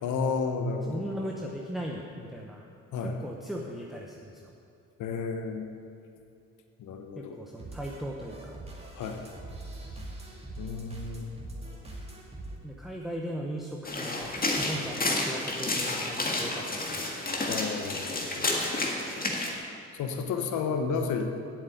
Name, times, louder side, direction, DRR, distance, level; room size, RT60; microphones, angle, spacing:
voice 1, 0.0-1.1 2.9-3.2 5.0-5.7 6.8-7.4 8.9-9.2 10.6-11.4 17.5-18.6 19.9-21.3, left 5 dB, 75° left, 5 dB, 1.1 m, -32 dB
voice 2, 0.9-2.7 3.0-4.5 7.2-8.6 12.6-17.2, equal, ahead, -1 dB, 0.9 m, -38 dB
sound 1, 7.6-12.6, right 2 dB, 20° right, 2.1 m, -42 dB
sound 2, 13.8-19.5, left 2 dB, 30° left, 1.9 m, -30 dB
8.3 x 7.4 x 8.5 m, 2.6 s
cardioid pair, 90°, 30 cm